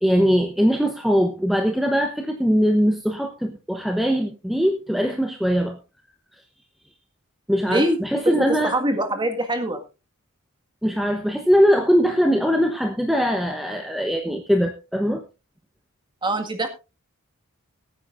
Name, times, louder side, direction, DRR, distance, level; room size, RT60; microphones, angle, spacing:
voice 1, 0.0-5.8 7.5-8.7 10.8-15.2, equal, ahead, 4 dB, 0.9 m, -21 dB
voice 2, 7.7-8.0 8.3-9.8 16.2-16.7, right 1 dB, 20° right, 6 dB, 1.8 m, -23 dB
21.5 x 9.2 x 2.5 m, 0.28 s
head